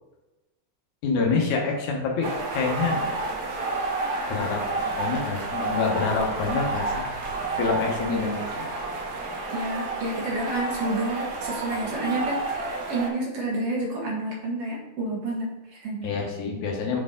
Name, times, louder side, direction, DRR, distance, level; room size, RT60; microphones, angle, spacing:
voice 1, 1.0-3.1 4.3-4.6 5.0-7.1 7.6-8.6 16.0-17.0, left 4 dB, 75° left, 0 dB, 2.5 m, -26 dB
sound 1, 2.2-13.1, right 2 dB, 80° right, 0.8 m, -30 dB
voice 2, 9.5-16.1, right 2 dB, 60° right, -2 dB, 1.9 m, -30 dB
7.1 x 4.6 x 3.7 m, 1.0 s
omnidirectional pair, 3.5 m